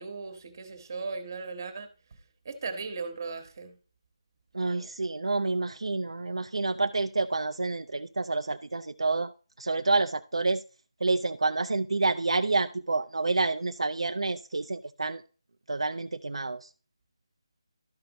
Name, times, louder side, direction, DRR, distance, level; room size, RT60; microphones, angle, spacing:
voice 1, 0.0-1.9 2.4-3.7, right 4 dB, 40° right, 1.3 m, -37 dB
voice 2, 4.5-9.3 9.6-10.6 11.0-15.2 15.7-16.6, right 3 dB, 85° right, 0.5 m, -28 dB
12.5 x 5.2 x 3.0 m
figure-of-eight pair, 165°, 3 cm